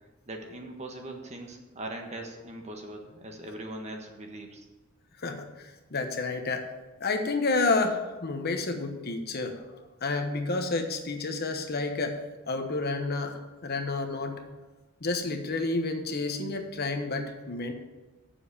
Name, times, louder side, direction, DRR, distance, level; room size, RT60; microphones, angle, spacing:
voice 1, 0.3-4.6, right 1 dB, 35° right, 3 dB, 1.3 m, -40 dB
voice 2, 5.2-6.7 7.0-9.6 10.0-12.2 12.5-14.4 15.0-17.7, left 3 dB, 50° left, 5 dB, 1.1 m, -30 dB
7.7 x 7.2 x 7.0 m, 1.2 s
head